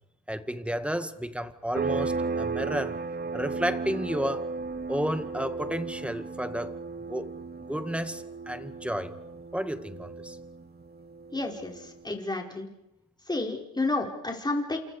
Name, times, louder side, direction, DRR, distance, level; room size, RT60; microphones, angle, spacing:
voice 1, 0.3-3.0 3.3-4.5 4.9-6.7 7.1-7.3 7.7-9.1 9.5-10.4, equal, 5° right, 9 dB, 1.9 m, -32 dB
sound 1, 1.7-12.1, right 4 dB, 30° right, 1.4 m, -35 dB
voice 2, 11.3-11.7 12.0-12.7 13.3-14.8, left 2 dB, 15° left, 1 dB, 5.1 m, -30 dB
29.0 x 27.5 x 5.0 m, 0.90 s
cardioid pair, 90°, 30 cm